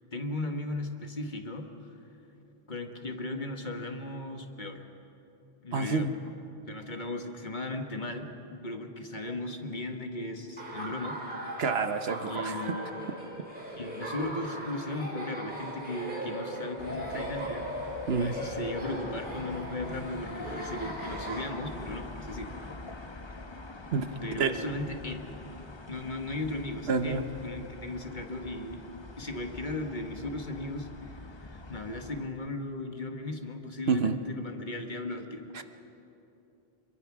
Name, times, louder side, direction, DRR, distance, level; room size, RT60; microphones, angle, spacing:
voice 1, 0.1-1.7 2.7-4.8 5.6-6.1 6.7-11.2 12.2-13.0 13.7-17.7 18.2-22.5 24.2-25.2 25.9-28.8 29.2-35.6, left 2 dB, 45° left, 4 dB, 1.7 m, -37 dB
voice 2, 5.7-6.1 11.6-12.7 18.1-18.3 23.9-24.1 24.4-24.5 26.9-27.2 33.9-34.2 35.5-35.6, right 5 dB, 70° right, 9 dB, 1.2 m, -28 dB
Laughter, 10.6-21.5, right 1 dB, 50° right, 4.6 m, -38 dB
sound 1, 16.8-32.3, left 2 dB, 25° left, 1.0 m, -45 dB
25.5 x 23.0 x 6.1 m, 3.0 s
omnidirectional pair, 1.1 m